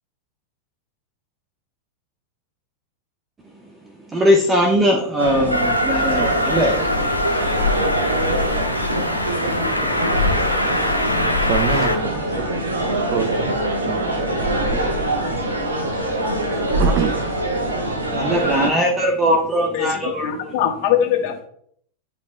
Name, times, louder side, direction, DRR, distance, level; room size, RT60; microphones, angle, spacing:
voice 1, 4.1-7.0 8.5-8.6 14.7-16.3 16.6-16.7 17.6-20.5, equal, 15° right, 1 dB, 1.0 m, -22 dB
sound 1, 5.2-18.7, right 1 dB, 75° right, 1.4 m, -24 dB
Train, 5.5-12.0, left 1 dB, 90° left, 1.0 m, -22 dB
voice 2, 11.3-13.6 13.9-15.4 16.5-17.4 17.7-17.9, right 7 dB, 40° right, 7 dB, 0.7 m, -27 dB
voice 3, 19.7-21.4, left 10 dB, 45° left, 4 dB, 1.3 m, -21 dB
11.5 x 5.1 x 2.2 m, 0.65 s
figure-of-eight pair, 90°, 0 cm